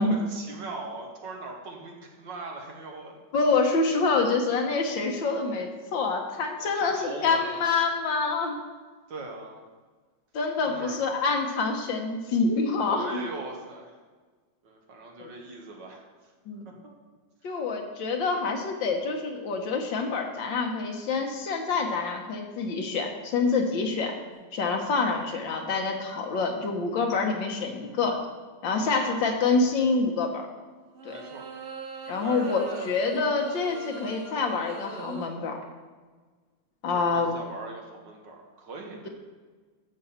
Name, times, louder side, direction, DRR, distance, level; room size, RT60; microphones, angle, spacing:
voice 1, 0.0-3.2 6.6-7.6 9.1-9.6 10.6-11.0 12.9-13.9 14.6-16.0 16.7-16.9 17.5-17.6 28.8-29.5 31.1-31.4 32.1-32.9 36.9-39.1, right 3 dB, 70° right, 1 dB, 2.1 m, -40 dB
voice 2, 3.3-8.6 10.3-13.2 15.2-15.3 16.5-16.7 17.4-24.1 24.5-28.2 28.6-30.4 31.0-31.2 32.1-35.6 36.8-37.4, left 4 dB, 80° left, 3 dB, 1.9 m, -26 dB
sound 1, 24.3-24.5 30.9-35.3, right 3 dB, 45° right, 0.8 m, -41 dB
12.0 x 7.3 x 4.2 m, 1.4 s
omnidirectional pair, 2.0 m